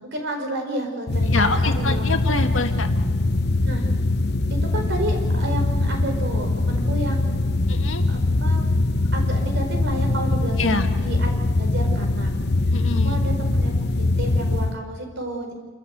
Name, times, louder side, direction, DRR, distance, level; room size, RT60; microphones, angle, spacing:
voice 1, 0.0-2.1 3.6-3.9 4.5-7.6 8.1-8.6 9.1-12.3 12.6-13.7 14.2-15.5, right 1 dB, 60° right, 3 dB, 4.7 m, -31 dB
sound 1, 1.1-14.8, left 2 dB, 55° left, 0.9 m, -22 dB
voice 2, 1.3-2.9 7.7-8.0 10.6-10.9 12.7-13.2, left 3 dB, 70° left, 5 dB, 1.8 m, -25 dB
28.5 x 13.5 x 8.0 m, 1.4 s
head